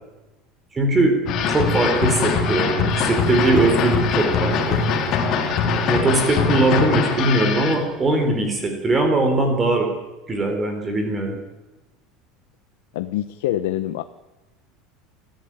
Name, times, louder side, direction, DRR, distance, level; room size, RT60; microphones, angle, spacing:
voice 1, 0.7-1.2 1.5-4.8 5.9-9.9 10.3-11.4, right 2 dB, 15° right, 4 dB, 4.0 m, -20 dB
sound 1, 1.3-7.8, left 5 dB, 35° left, 3.3 m, -22 dB
Motorcycle, 1.4-9.1, left 4 dB, 15° left, 2.0 m, -37 dB
voice 2, 12.9-14.0, left 13 dB, 85° left, 10 dB, 1.1 m, -25 dB
29.0 x 14.5 x 9.1 m, 1.1 s
cardioid pair, 170°, 0 cm